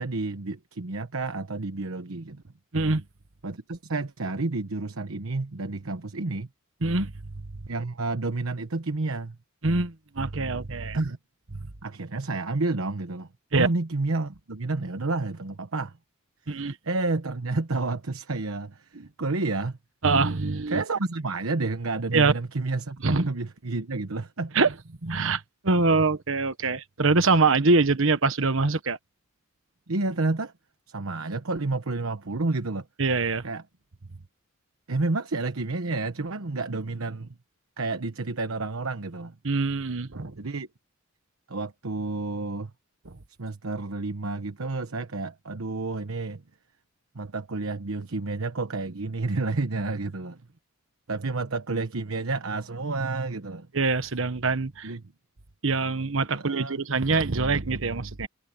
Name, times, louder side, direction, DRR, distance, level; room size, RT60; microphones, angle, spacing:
voice 1, 0.0-2.4 3.4-6.5 7.7-9.4 10.9-11.2 11.8-15.9 16.8-18.9 19.2-19.8 20.7-23.0 23.3-24.5 29.9-30.5 30.9-32.9 33.4-33.6 34.9-37.4 37.8-39.4 40.4-40.7 41.5-42.7 43.4-46.4 47.1-50.4 51.1-53.7 54.8-55.0 56.3-56.8, right 3 dB, 85° right, 1.1 m, -30 dB
voice 2, 2.7-3.0 6.8-7.5 9.6-11.0 13.5-13.7 16.5-16.8 18.9-19.1 20.0-20.8 22.1-22.3 23.0-23.3 24.5-24.7 25.0-29.0 33.0-33.4 39.4-40.3 53.7-54.9 55.6-58.3, right 3 dB, 70° right, 1.3 m, -24 dB
head